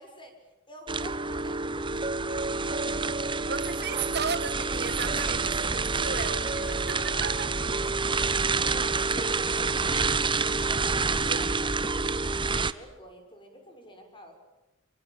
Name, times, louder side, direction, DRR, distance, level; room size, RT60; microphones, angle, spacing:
voice 1, 0.0-3.5 3.8-4.1 4.7-5.0 8.0-9.9 10.3-14.3, equal, 25° left, 6.1 m, -48 dB
sound 1, 0.9-12.7, right 4 dB, 25° right, 1.0 m, -28 dB
voice 2, 3.4-7.6 11.3-11.4, right 6 dB, 55° right, 1.7 m, -34 dB
sound 2, 4.6-10.0, left 3 dB, 65° left, 2.2 m, -49 dB
27.0 x 24.0 x 8.8 m
head